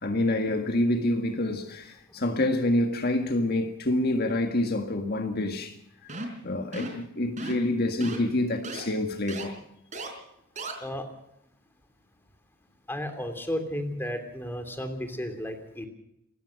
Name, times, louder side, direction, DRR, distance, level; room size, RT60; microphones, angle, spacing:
voice 1, 0.0-5.8 6.4-9.5, left 1 dB, 50° left, 1.7 m, -27 dB
sound 1, 6.1-6.4 6.7-7.0 7.4-7.7 8.0-8.2 8.6-8.8 9.3-9.4 9.9-10.1 10.6-10.7, right 2 dB, 35° right, 4.7 m, -35 dB
voice 2, 12.9-15.9, equal, 10° left, 3.0 m, -33 dB
27.5 x 14.5 x 6.5 m
head